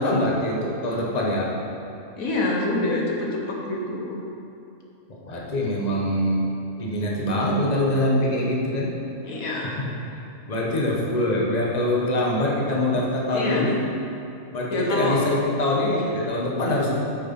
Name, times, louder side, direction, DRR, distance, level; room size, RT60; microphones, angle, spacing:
voice 1, 0.0-1.5 5.3-6.5 6.8-8.9 9.6-13.8 14.5-16.9, left 1 dB, 30° left, -3 dB, 1.4 m, -24 dB
voice 2, 2.2-4.2 9.2-9.7 13.3-13.7 14.7-15.2, left 2 dB, 85° left, -2 dB, 1.7 m, -26 dB
9.2 x 6.5 x 5.5 m, 2.8 s
omnidirectional pair, 1.4 m